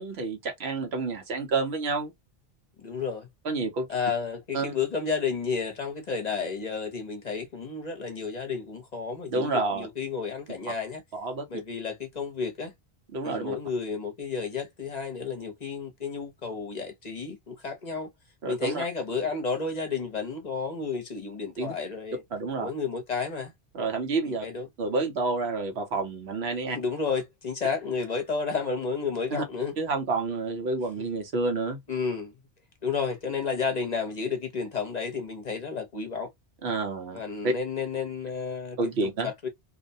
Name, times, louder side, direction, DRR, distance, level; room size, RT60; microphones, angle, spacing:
voice 1, 0.0-2.1 3.4-3.9 4.5-4.7 9.3-9.9 11.1-11.5 13.1-13.6 18.4-18.8 21.6-21.7 22.3-22.7 23.7-24.5 24.8-26.8 29.3-29.4 29.8-31.8 36.6-37.2 37.4-37.5 38.8-39.3, right 3 dB, 75° right, 1.1 m, -29 dB
voice 2, 2.8-3.3 3.9-11.0 11.5-12.7 13.2-18.1 18.5-22.2 22.6-23.5 24.4-24.7 26.7-29.7 31.9-32.3 32.8-36.3 37.1-39.5, left 5 dB, 45° left, 0.7 m, -31 dB
2.7 x 2.1 x 2.6 m
omnidirectional pair, 1.1 m